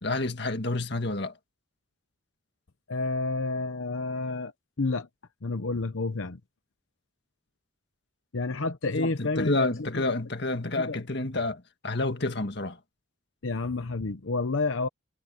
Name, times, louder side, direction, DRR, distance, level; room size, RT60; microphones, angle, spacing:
voice 1, 0.0-1.3 8.9-12.8, left 2 dB, 55° left, 1.8 m, -29 dB
voice 2, 2.9-4.5 4.8-5.1 5.4-6.4 8.3-10.0 10.6-11.0 13.4-14.9, left 3 dB, 75° left, 0.9 m, -30 dB
head